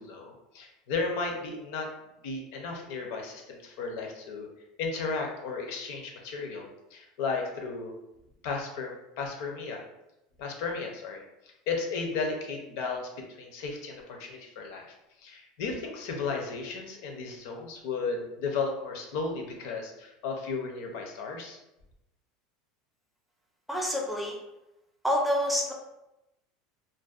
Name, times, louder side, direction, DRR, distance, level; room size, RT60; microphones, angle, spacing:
voice 1, 0.0-1.9 2.2-4.5 4.8-7.9 8.4-9.8 10.4-11.2 11.7-21.6, left 4 dB, 70° left, 1 dB, 0.6 m, -34 dB
voice 2, 23.7-24.4 25.0-25.7, equal, 5° right, -1 dB, 0.5 m, -27 dB
2.5 x 2.1 x 2.4 m, 0.91 s
supercardioid pair, 140°, 2 cm